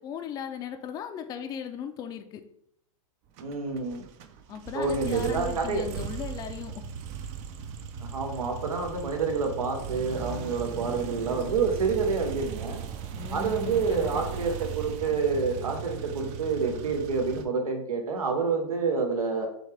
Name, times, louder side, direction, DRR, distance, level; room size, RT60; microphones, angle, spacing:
voice 1, 0.0-2.4 4.5-6.8 13.1-14.2, left 8 dB, 20° left, 6 dB, 0.4 m, -37 dB
sound 1, 3.4-17.5, right 7 dB, 40° right, 0.4 m, -38 dB
voice 2, 3.4-4.0 4.7-5.9 8.0-12.8 13.3-19.5, right 4 dB, 90° right, 3 dB, 1.1 m, -28 dB
6.3 x 2.4 x 3.3 m, 0.71 s
hypercardioid pair, 125°, 18 cm